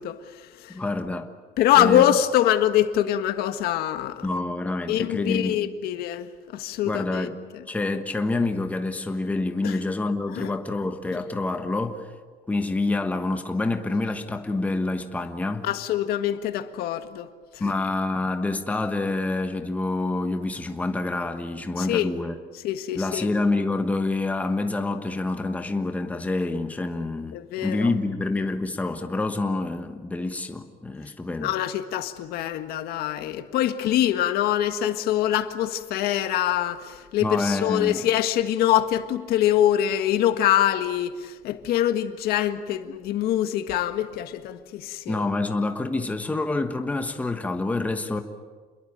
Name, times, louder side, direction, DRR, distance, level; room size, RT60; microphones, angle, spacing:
voice 1, 0.0-0.8 1.6-4.2 4.9-7.6 9.6-9.8 10.3-10.5 11.1-11.2 15.6-17.7 21.8-22.1 22.6-23.3 27.3-27.9 31.4-45.3, left 12 dB, 80° left, 1.7 m, -24 dB
voice 2, 0.7-1.3 1.7-2.0 4.2-5.6 6.8-7.3 7.7-12.1 12.5-15.7 17.6-22.3 23.0-31.5 37.2-38.1 45.1-48.2, left 2 dB, 10° left, 1.3 m, -27 dB
28.0 x 22.0 x 8.9 m
cardioid pair, 175°, 16 cm